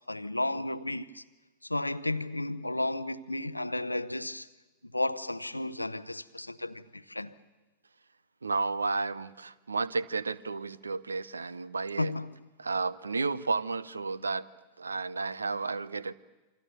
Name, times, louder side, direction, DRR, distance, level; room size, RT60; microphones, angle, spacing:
voice 1, 0.1-1.2 1.6-4.5 4.8-7.3 12.0-12.3, left 2 dB, 85° left, 0.8 m, -33 dB
voice 2, 8.4-12.1 12.6-14.4 14.8-16.1, right 4 dB, 75° right, 0.8 m, -32 dB
28.0 x 25.5 x 6.9 m
figure-of-eight pair, 90°, 0 cm